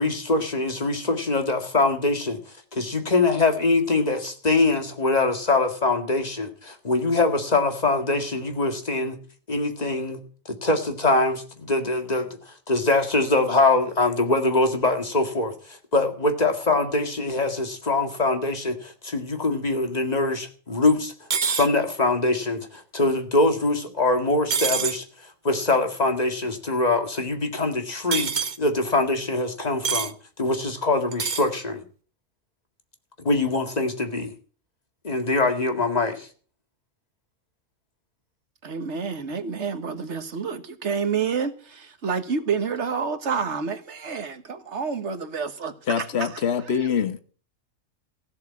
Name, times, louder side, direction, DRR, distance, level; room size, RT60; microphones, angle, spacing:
voice 1, 0.0-2.4 2.7-9.2 9.5-10.2 10.5-12.4 12.7-21.1 21.5-25.0 25.4-28.3 28.6-30.1 30.4-31.8 33.2-34.3 35.0-36.3, left 2 dB, 30° left, 2.0 m, -23 dB
sound 1, 21.3-21.7 24.5-25.0 28.1-28.6 29.8-30.1 31.1-31.5, right 6 dB, 40° right, 0.9 m, -25 dB
voice 2, 38.6-46.4 46.7-46.8, right 6 dB, 60° right, 1.7 m, -29 dB
voice 3, 45.9-47.2, left 7 dB, 55° left, 1.4 m, -24 dB
16.0 x 7.1 x 8.3 m
omnidirectional pair, 1.4 m